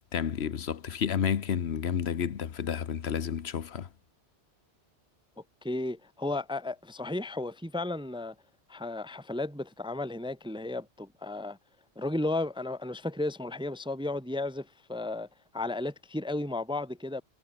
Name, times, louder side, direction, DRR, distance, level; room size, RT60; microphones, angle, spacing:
voice 1, 0.1-3.9, left 8 dB, 70° left, 1.2 m, -30 dB
voice 2, 5.6-8.3 8.7-11.6 12.0-15.3 15.5-17.2, left 2 dB, 5° right, 0.5 m, -34 dB
omnidirectional pair, 1.1 m